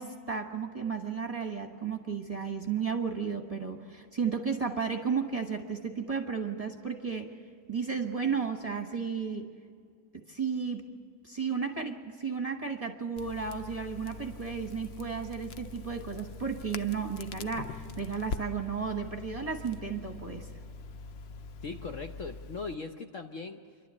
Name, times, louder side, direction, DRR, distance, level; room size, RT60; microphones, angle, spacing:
voice 1, 0.0-7.3 7.7-9.5 10.1-10.9 11.2-20.5, right 6 dB, 25° right, 3 dB, 1.1 m, -33 dB
Crackle, 13.2-22.7, left 4 dB, 85° left, 0.5 m, -43 dB
voice 2, 21.6-23.8, left 4 dB, 55° left, 4 dB, 1.0 m, -39 dB
27.5 x 12.0 x 8.3 m, 2.1 s
omnidirectional pair, 1.9 m